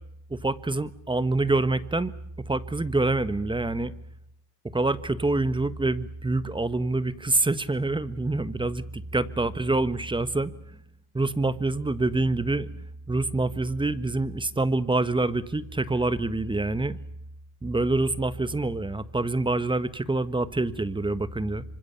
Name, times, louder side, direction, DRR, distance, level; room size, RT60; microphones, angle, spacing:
voice 1, 0.3-2.1 2.5-3.9 4.7-10.5 11.1-17.0 17.6-21.6, right 2 dB, 10° right, 14 dB, 1.4 m, -26 dB
25.5 x 25.5 x 6.9 m, 0.73 s
supercardioid pair, 95°, 46 cm